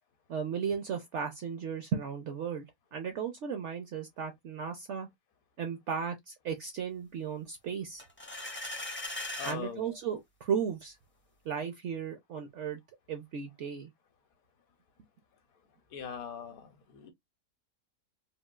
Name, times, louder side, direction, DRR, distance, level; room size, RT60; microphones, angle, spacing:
voice 1, 0.3-2.7 2.9-5.1 5.6-8.1 9.4-11.0 11.5-12.8 13.1-13.9, right 7 dB, 65° right, 0.7 m, -35 dB
sound 1, 8.0-9.6, left 2 dB, 15° left, 0.4 m, -38 dB
voice 2, 9.4-9.9 15.9-17.1, left 7 dB, 70° left, 1.0 m, -41 dB
3.7 x 2.3 x 2.3 m
omnidirectional pair, 1.7 m